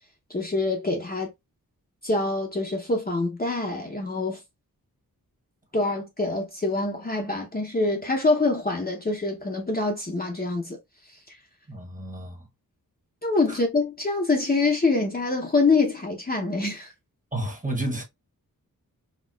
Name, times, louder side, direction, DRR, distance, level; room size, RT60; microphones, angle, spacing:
voice 1, 0.3-1.3 2.0-4.4 5.7-10.8 13.2-16.9, left 3 dB, 25° left, 0.7 m, -25 dB
voice 2, 11.7-12.5 13.5-13.6 17.3-18.0, right 1 dB, 20° right, 1.1 m, -31 dB
4.3 x 2.3 x 2.2 m
wide cardioid pair, 75°, 36 cm